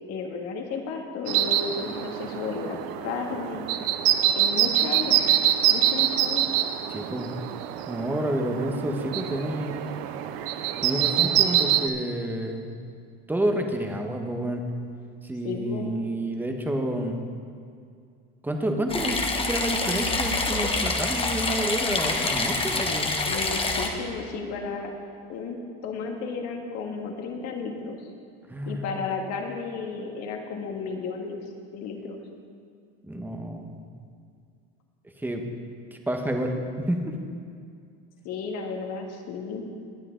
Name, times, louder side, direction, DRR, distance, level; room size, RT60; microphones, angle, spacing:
voice 1, 0.1-3.7 4.3-5.2 5.7-6.5 15.4-15.9 23.3-24.9 25.3-25.6 25.8-28.0 28.7-31.4 31.7-32.2 38.2-39.6, left 5 dB, 55° left, 2 dB, 1.8 m, -33 dB
sound 1, 1.3-11.9, right 11 dB, 75° right, 0.8 m, -25 dB
voice 2, 6.9-7.3 7.9-9.9 10.8-12.7 13.3-14.6 15.2-17.2 18.4-23.1 28.5-28.8 33.0-33.8 35.2-35.4 35.9-37.2, right 1 dB, 5° right, 3 dB, 1.2 m, -29 dB
sound 2, 18.9-23.9, left 3 dB, 20° left, 1.2 m, -26 dB
21.0 x 7.6 x 3.8 m, 2.3 s
supercardioid pair, 125°, 30 cm